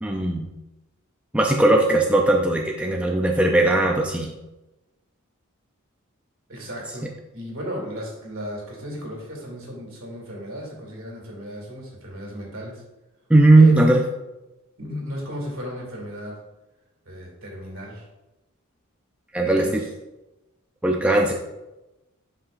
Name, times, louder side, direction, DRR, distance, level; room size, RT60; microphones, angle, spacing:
voice 1, 0.0-0.5 1.3-4.3 13.3-14.0 19.3-19.8 20.8-21.3, right 2 dB, 5° right, 0 dB, 0.4 m, -18 dB
voice 2, 6.5-7.1 7.3-12.8 13.5-13.9 14.8-16.3 17.1-18.1 19.4-19.9, equal, 65° right, -1 dB, 2.4 m, -35 dB
8.1 x 5.6 x 2.6 m, 1.0 s
head